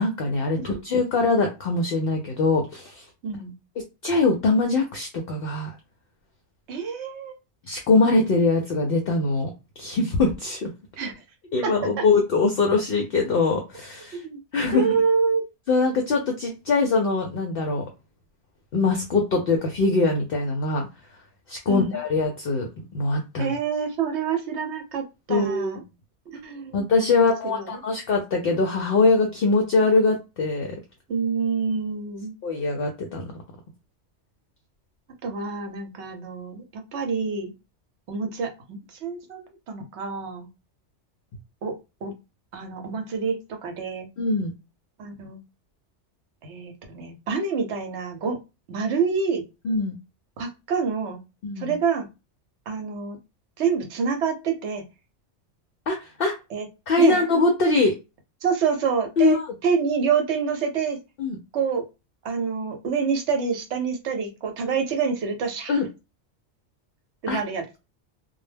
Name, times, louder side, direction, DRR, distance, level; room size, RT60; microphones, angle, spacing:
voice 1, 0.0-3.0 4.0-5.8 7.7-9.5 9.8-10.7 11.5-14.2 14.5-14.9 15.7-17.8 18.7-20.9 21.5-23.5 25.3-25.7 26.7-30.7 32.4-33.3 44.2-44.5 49.6-49.9 51.4-51.7 55.9-56.3 56.9-58.0 59.2-59.5 61.2-61.4 65.7-65.9 67.3-67.4, left 3 dB, 60° left, 2 dB, 0.7 m, -22 dB
voice 2, 3.2-3.5 6.7-7.3 11.0-11.1 11.6-12.0 14.1-14.4 14.7-15.4 21.7-22.0 23.4-25.8 26.3-26.8 27.1-27.8 31.1-32.3 35.2-37.5 38.1-40.5 41.6-41.7 42.0-42.1 42.5-44.1 45.0-45.4 46.4-48.4 48.7-49.4 50.4-51.2 51.6-52.1 52.7-53.2 53.6-54.8 56.5-56.7 57.0-57.2 58.4-61.0 61.5-61.8 62.2-65.8 67.2-67.6, right 5 dB, 70° right, 5 dB, 0.9 m, -27 dB
2.2 x 2.0 x 3.2 m, 0.27 s
omnidirectional pair, 1.2 m